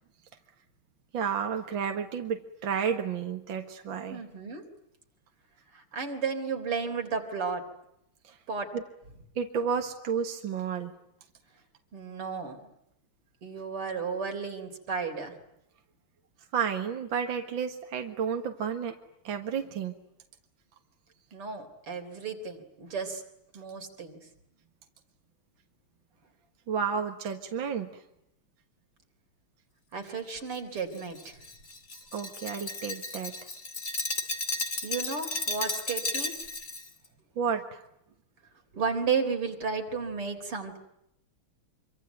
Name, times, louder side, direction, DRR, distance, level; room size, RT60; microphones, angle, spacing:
voice 1, 1.1-4.2 8.2-8.4 8.7-8.8 9.4-10.9 16.5-19.0 19.2-20.0 26.7-28.0 32.1-33.4 37.4-37.8, right 7 dB, 65° right, 5 dB, 2.4 m, -31 dB
voice 2, 4.1-4.6 5.7-7.6 8.5-8.7 11.9-12.7 13.4-15.3 21.3-23.2 23.5-24.2 29.9-31.4 34.8-36.3 38.7-40.8, right 5 dB, 85° right, 5 dB, 4.6 m, -33 dB
Glass, 30.5-36.9, left 2 dB, 30° left, 2.9 m, -34 dB
26.0 x 25.0 x 9.2 m, 0.80 s
omnidirectional pair, 2.4 m